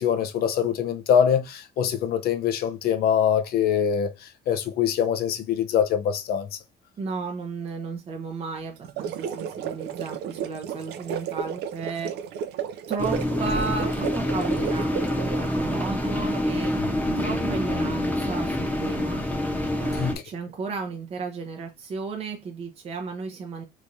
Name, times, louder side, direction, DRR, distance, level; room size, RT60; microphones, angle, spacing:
voice 1, 0.0-6.5 20.0-20.2, left 8 dB, 65° left, 0.6 m, -24 dB
voice 2, 7.0-12.1 12.9-16.7 17.2-19.2 19.8-23.6, right 4 dB, 35° right, 0.6 m, -34 dB
sound 1, 8.8-15.6, right 8 dB, 75° right, 0.5 m, -33 dB
belfry theme, 13.0-20.1, left 1 dB, 10° left, 0.9 m, -26 dB
3.4 x 3.0 x 2.6 m
cardioid pair, 110°, 17 cm